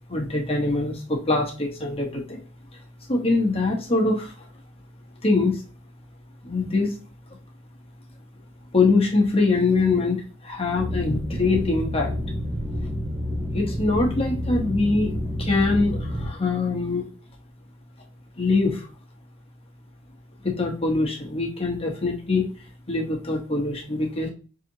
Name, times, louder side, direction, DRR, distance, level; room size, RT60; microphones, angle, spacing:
voice 1, 0.1-2.4 3.1-4.3 5.2-5.6 6.4-6.9 8.7-12.1 13.5-17.0 18.4-18.9 20.4-22.4 22.9-24.3, left 3 dB, 30° left, 0 dB, 1.0 m, -23 dB
sound 1, 10.8-16.3, left 1 dB, 15° right, 0.6 m, -29 dB
5.5 x 2.8 x 2.7 m, 0.36 s
head